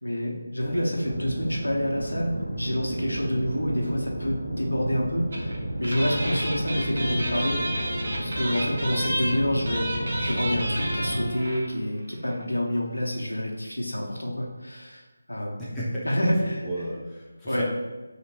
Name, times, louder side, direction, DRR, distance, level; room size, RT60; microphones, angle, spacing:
voice 1, 0.0-7.8 8.2-9.9 10.2-15.5 16.0-16.7 17.5-17.6, equal, 80° left, -1 dB, 0.7 m, -28 dB
voice 2, 0.6-0.9 6.1-6.2 15.6-16.0 16.6-17.6, equal, 5° left, -9 dB, 0.5 m, -34 dB
sound 1, 1.0-11.3, equal, 65° right, 1.2 m, -32 dB
sound 2, 5.3-5.6 5.8-11.7 12.0-12.1 12.3-12.4, right 1 dB, 50° right, 0.7 m, -31 dB
2.9 x 2.8 x 2.9 m, 1.2 s
figure-of-eight pair, 160°, 0 cm